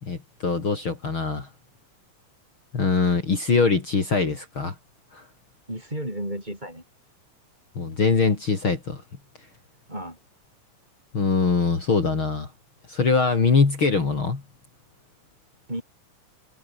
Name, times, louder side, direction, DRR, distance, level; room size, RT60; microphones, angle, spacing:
voice 1, 0.0-1.5 2.7-4.7 5.1-5.3 7.8-9.0 11.1-12.5 12.9-14.4, left 4 dB, 40° left, 4.0 m, -22 dB
voice 2, 5.7-6.8 9.9-10.2 15.7-15.8, right 1 dB, 15° right, 7.4 m, -32 dB
omnidirectional pair, 3.5 m